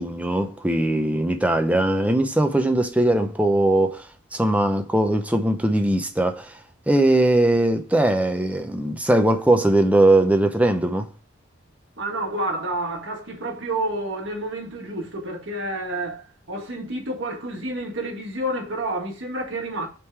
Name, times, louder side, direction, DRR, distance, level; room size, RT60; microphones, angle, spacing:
voice 1, 0.0-4.1 4.3-6.6 6.9-11.1, right 1 dB, 5° right, 0.6 m, -20 dB
voice 2, 12.0-19.9, right 1 dB, 60° right, 1.7 m, -29 dB
5.9 x 3.7 x 4.6 m
head